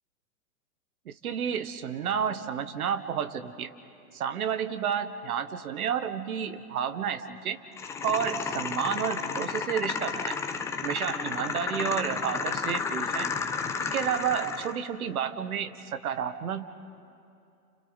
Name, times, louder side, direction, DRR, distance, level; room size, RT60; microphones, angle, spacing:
voice 1, 1.0-3.7 4.1-7.6 8.0-10.4 10.8-13.3 13.8-16.7, right 8 dB, 65° right, 10 dB, 1.6 m, -31 dB
sound 1, 7.8-14.8, left 5 dB, 5° left, 0.5 m, -32 dB
29.5 x 29.5 x 4.2 m, 2.6 s
figure-of-eight pair, 110°, 47 cm